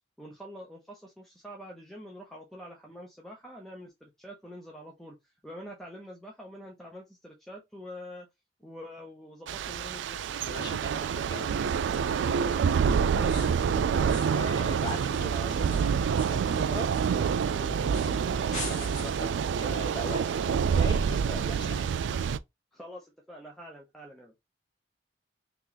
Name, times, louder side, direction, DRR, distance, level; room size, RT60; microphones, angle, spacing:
voice 1, 0.2-5.2 5.4-8.3 8.6-10.3 12.4-12.6 13.4-14.2 22.7-24.3, equal, ahead, 0.6 m, -45 dB
Thunder / Rain, 9.5-22.4, right 6 dB, 80° right, 0.3 m, -27 dB
voice 2, 10.4-12.4 13.1-13.5 14.2-21.9, right 1 dB, 25° left, 1.1 m, -40 dB
sound 1, 13.2-13.7 14.1-14.5 14.8-17.5 17.9-18.2 18.5-19.4, left 2 dB, 45° left, 1.3 m, -43 dB
3.0 x 2.8 x 3.9 m
head